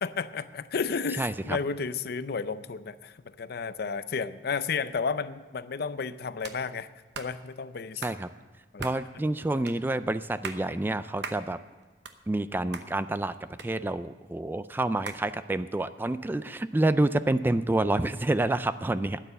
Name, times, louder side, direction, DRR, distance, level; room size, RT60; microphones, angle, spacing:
voice 1, 0.0-6.9 7.2-8.0 8.7-9.2, left 5 dB, 60° left, 14 dB, 0.5 m, -32 dB
voice 2, 1.2-1.6 8.0-8.3 8.8-11.6 12.3-19.2, right 2 dB, 10° right, 13 dB, 0.3 m, -28 dB
sound 1, 6.4-6.6 7.1-7.3 8.0-8.2 8.8-9.0 9.7-9.8 10.3-10.6 11.2-11.4 11.8-12.5 12.7-12.9 13.6-14.2 15.1-15.2, right 5 dB, 70° right, 0.9 m, -39 dB
12.5 x 9.2 x 6.6 m, 1.4 s
head